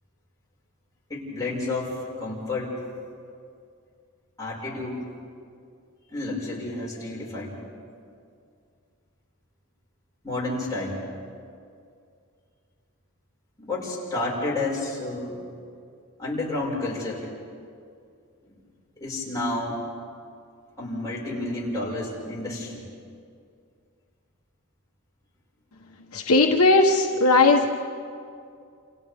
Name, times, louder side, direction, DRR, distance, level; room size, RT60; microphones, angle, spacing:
voice 1, 1.1-2.8 4.4-5.0 6.1-7.6 10.2-11.0 13.6-15.4 16.2-17.3 18.4-18.5 19.0-19.9 20.8-22.8, left 2 dB, 15° left, -6 dB, 5.8 m, -30 dB
voice 2, 26.1-27.7, left 3 dB, 70° left, 1 dB, 1.3 m, -18 dB
29.0 x 28.5 x 3.6 m, 2.4 s
head